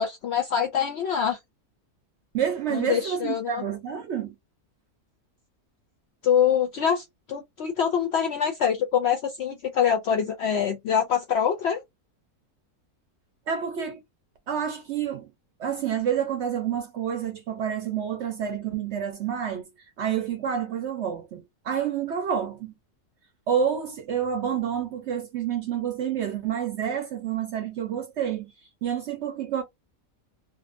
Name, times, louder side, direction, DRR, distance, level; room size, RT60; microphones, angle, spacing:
voice 1, 0.0-1.4 2.7-3.6 6.2-11.8, left 8 dB, 70° left, 0.6 m, -25 dB
voice 2, 2.3-4.3 13.5-14.0 14.5-15.3 15.6-19.7 20.0-22.7 23.5-28.5 28.8-29.6, right 8 dB, 65° right, 0.7 m, -28 dB
2.6 x 2.2 x 2.5 m
omnidirectional pair, 1.6 m